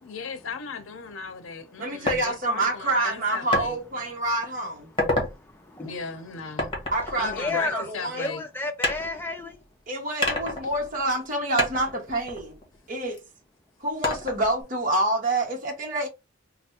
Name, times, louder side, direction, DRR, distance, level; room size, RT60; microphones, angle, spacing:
voice 1, 0.0-3.8 5.8-6.7 7.2-8.4, left 5 dB, 85° left, 0.6 m, -37 dB
voice 2, 1.8-4.9 6.9-8.3 9.9-12.6 12.9-13.2 13.8-16.1, right 1 dB, 40° right, 0.8 m, -27 dB
sound 1, 2.1-2.2 3.5-3.7 4.2-4.4 4.8-5.3 6.6-8.1 8.8-9.7 10.2-11.3 11.6-13.2 14.0-14.6, left 1 dB, 25° left, 1.1 m, -29 dB
voice 3, 4.9-6.0 6.5-6.9 7.3-7.9 8.2-9.6, left 3 dB, 10° left, 0.5 m, -33 dB
3.3 x 2.0 x 4.2 m
head